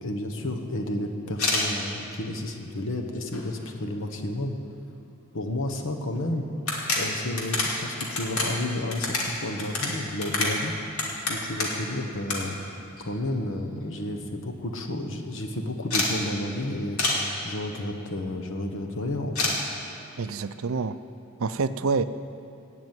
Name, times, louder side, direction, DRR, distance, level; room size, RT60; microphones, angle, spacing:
voice 1, 0.0-4.5 5.3-6.5 6.9-10.7 11.3-12.6 13.0-17.0 17.4-19.5, left 1 dB, 60° left, 4 dB, 1.3 m, -31 dB
sound 1, 1.3-1.7 2.4-2.5 2.9-3.7 4.0-4.1 4.3-4.4 5.8-5.9 6.1-6.2 6.6-11.9 12.3-12.4 12.7-13.5 13.8-13.9 14.1-14.3 14.5-14.8 15.9-16.1 17.0-17.2 19.3-19.6, left 3 dB, 85° left, 2.4 m, -28 dB
voice 2, 20.2-21.0 21.4-22.0, right 4 dB, 70° right, 12 dB, 0.5 m, -27 dB
16.0 x 6.2 x 9.1 m, 2.6 s
head